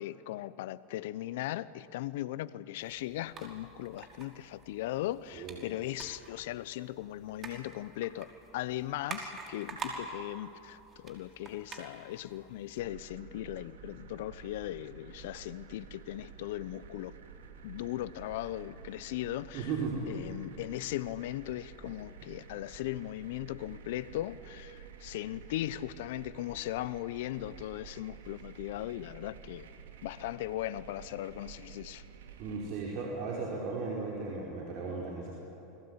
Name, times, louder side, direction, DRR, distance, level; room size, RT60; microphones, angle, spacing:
voice 1, 0.0-17.2 17.6-19.7 20.1-29.7 30.0-32.0, left 14 dB, 70° left, 1.0 m, -38 dB
sound 1, 2.8-12.8, right 4 dB, 35° right, 5.4 m, -47 dB
sound 2, 12.8-32.7, right 7 dB, 75° right, 2.9 m, -51 dB
voice 2, 19.5-20.0 32.4-35.3, right 4 dB, 55° right, 5.1 m, -36 dB
29.0 x 21.0 x 9.9 m
hypercardioid pair, 90°, 0 cm